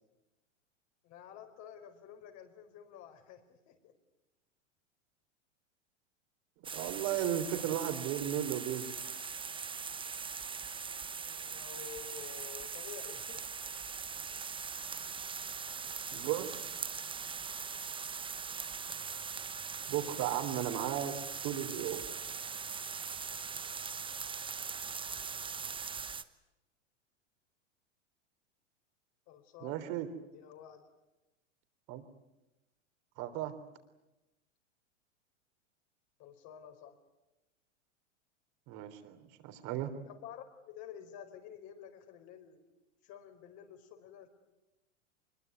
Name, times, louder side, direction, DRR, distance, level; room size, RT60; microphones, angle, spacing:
voice 1, 1.0-3.9 11.2-13.4 20.0-20.2 29.3-29.8 30.3-30.9 36.2-37.0 40.1-42.6 43.0-44.3, left 8 dB, 45° left, 5 dB, 4.9 m, -50 dB
sound 1, 6.6-26.2, right 6 dB, 15° right, 1.1 m, -41 dB
voice 2, 6.7-8.9 16.1-16.9 19.9-21.1 21.4-22.0 29.6-30.1 31.9-32.0 33.2-33.5 38.7-39.9, right 11 dB, 50° right, 8 dB, 3.6 m, -35 dB
24.5 x 22.0 x 9.4 m, 1.0 s
hypercardioid pair, 100°, 36 cm